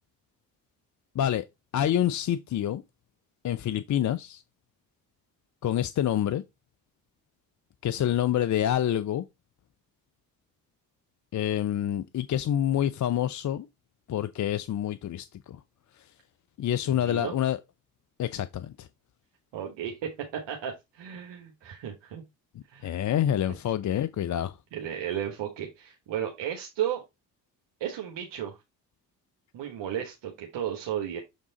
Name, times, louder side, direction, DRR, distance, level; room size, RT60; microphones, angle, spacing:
voice 1, 1.7-2.8 3.4-4.4 5.6-6.4 7.8-9.2 11.3-13.7 14.1-15.6 16.6-17.6 18.2-18.9 22.8-24.6, left 11 dB, 40° left, 0.6 m, -27 dB
voice 2, 16.9-17.3 19.5-22.2 22.7-23.0 24.7-27.0 27.8-28.6 29.5-31.2, right 10 dB, 60° right, 1.3 m, -34 dB
7.1 x 3.6 x 3.9 m
hypercardioid pair, 45°, 49 cm